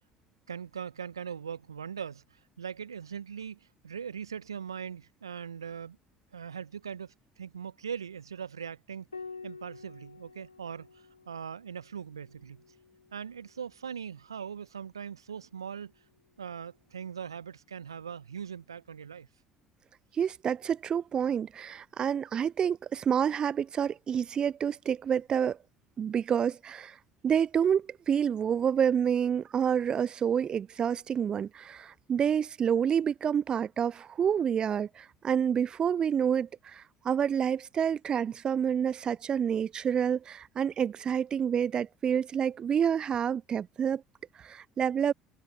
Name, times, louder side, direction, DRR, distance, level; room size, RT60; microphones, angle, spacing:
voice 1, 0.5-6.0 6.3-9.1 9.4-12.6 13.1-15.9 16.4-19.3, right 7 dB, 85° right, 1.3 m, -40 dB
Piano, 9.1-14.0 15.6-16.4, left 4 dB, 90° left, 2.0 m, -50 dB
voice 2, 20.1-25.6 26.0-27.0 27.2-44.0 44.4-45.1, right 8 dB, 35° right, 0.4 m, -28 dB
figure-of-eight pair, 60°, 2 cm